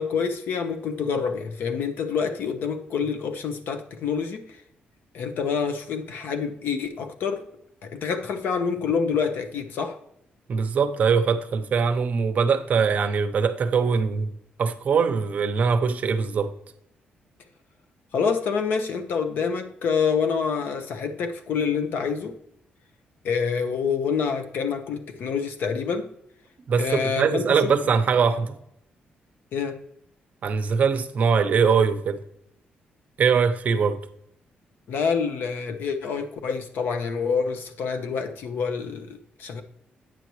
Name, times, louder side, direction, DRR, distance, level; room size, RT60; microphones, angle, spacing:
voice 1, 0.0-4.6 5.1-7.4 7.8-10.0 18.1-22.4 23.2-26.1 26.8-27.7 29.5-29.8 34.9-39.6, left 6 dB, 75° left, 0.9 m, -27 dB
voice 2, 10.5-14.3 14.6-16.5 26.7-28.6 30.4-32.2 33.2-34.0, right 5 dB, 50° right, 0.7 m, -22 dB
9.1 x 6.8 x 3.1 m
cardioid pair, 145°, 3 cm